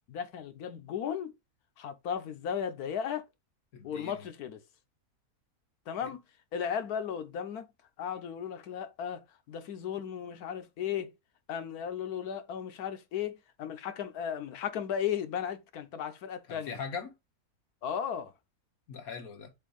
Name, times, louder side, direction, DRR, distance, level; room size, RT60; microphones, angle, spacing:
voice 1, 0.1-1.3 1.8-3.3 3.8-4.6 5.9-6.2 6.5-7.7 8.0-11.1 11.5-16.8 17.8-18.3, left 8 dB, 90° left, 1.4 m, -35 dB
voice 2, 3.7-4.3 6.0-6.1 16.5-17.1 18.9-19.5, left 5 dB, 75° left, 1.7 m, -41 dB
7.4 x 2.6 x 5.1 m
omnidirectional pair, 1.5 m